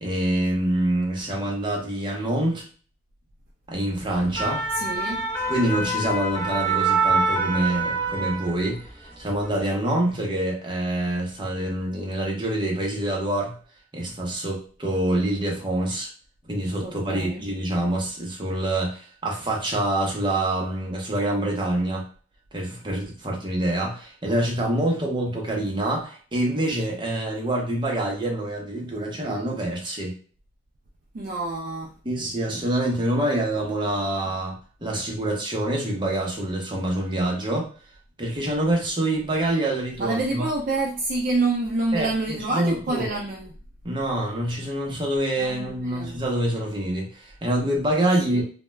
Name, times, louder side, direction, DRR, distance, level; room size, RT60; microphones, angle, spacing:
voice 1, 0.0-2.6 3.7-4.6 5.5-8.8 9.2-13.5 13.9-16.1 16.5-22.0 22.5-30.1 32.0-34.6 34.8-37.7 38.2-40.5 41.9-42.1 42.5-43.1 43.8-48.4, right 1 dB, 25° right, -2 dB, 0.7 m, -26 dB
sound 1, 4.1-8.9 9.2-9.5, right 3 dB, 10° left, 0.8 m, -25 dB
voice 2, 4.7-5.2 16.8-17.5 31.1-31.9 40.0-43.5 45.4-46.2 48.3-48.4, right 2 dB, 50° right, 0 dB, 0.4 m, -27 dB
2.2 x 2.2 x 3.1 m, 0.41 s
head